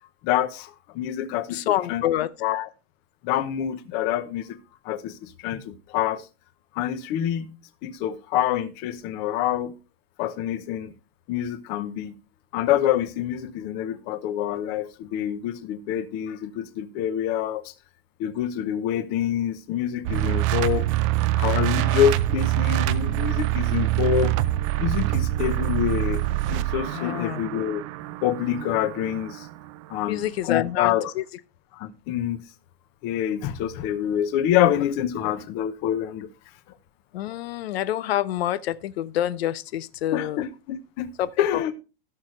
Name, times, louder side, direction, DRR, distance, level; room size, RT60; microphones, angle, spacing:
voice 1, 0.2-2.0 2.4-2.7 3.2-4.6 4.8-6.3 6.7-7.5 7.8-9.8 10.2-10.9 11.3-12.1 12.5-17.7 18.2-20.9 21.3-24.3 24.8-26.2 26.5-27.8 28.2-29.5 29.9-31.1 31.7-32.4 33.0-36.3 40.1-41.1 41.4-41.7, left 11 dB, 35° left, 0.9 m, -26 dB
voice 2, 1.5-2.3 26.9-27.4 30.1-30.9 31.2-31.3 37.1-40.4 41.2-41.7, left 12 dB, 90° left, 0.8 m, -27 dB
sound 1, 20.0-30.0, right 15 dB, 35° right, 0.5 m, -25 dB
16.0 x 6.5 x 3.2 m
supercardioid pair, 170°, 30 cm